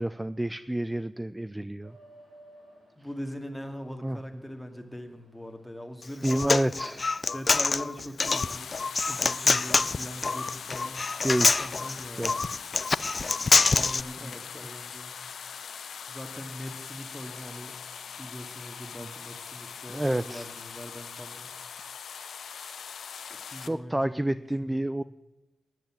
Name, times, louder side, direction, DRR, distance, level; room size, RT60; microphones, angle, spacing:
voice 1, 0.0-2.0 4.0-4.2 6.2-7.1 9.5-9.6 11.2-11.7 12.1-12.3 19.0-19.1 19.9-20.5 23.6-25.0, right 1 dB, 15° right, 14 dB, 0.4 m, -29 dB
sound 1, 1.8-21.6, right 1 dB, 75° right, 6.2 m, -62 dB
voice 2, 3.0-6.7 7.3-8.7 9.0-11.0 11.4-12.4 13.5-15.2 16.1-17.8 18.2-21.5 23.2-24.8, equal, 5° left, 4 dB, 2.2 m, -41 dB
Human voice, 6.0-14.0, left 4 dB, 50° left, 0.4 m, -25 dB
sound 2, 8.2-23.7, left 7 dB, 85° left, 0.7 m, -42 dB
11.5 x 9.6 x 7.6 m, 1.0 s
cardioid pair, 45°, 0 cm